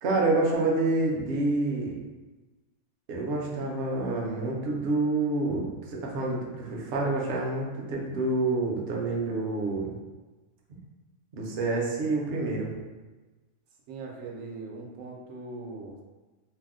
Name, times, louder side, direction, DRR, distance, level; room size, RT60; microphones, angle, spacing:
voice 1, 0.0-1.9 3.1-5.6 5.9-9.9 11.3-12.7, right 2 dB, 60° right, -2 dB, 0.8 m, -27 dB
voice 2, 13.9-16.0, right 3 dB, 85° right, -1 dB, 1.0 m, -40 dB
2.7 x 2.0 x 3.6 m, 1.2 s
omnidirectional pair, 1.3 m